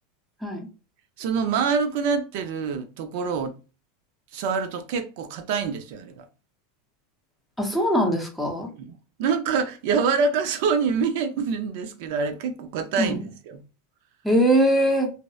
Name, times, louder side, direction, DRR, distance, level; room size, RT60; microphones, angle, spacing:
voice 1, 1.2-3.5 4.3-6.3 8.8-13.6, right 5 dB, 60° right, 0.4 m, -26 dB
voice 2, 7.6-8.7 13.0-13.2 14.2-15.1, right 1 dB, ahead, 0.6 m, -21 dB
2.7 x 2.0 x 2.3 m
supercardioid pair, 140°, 0 cm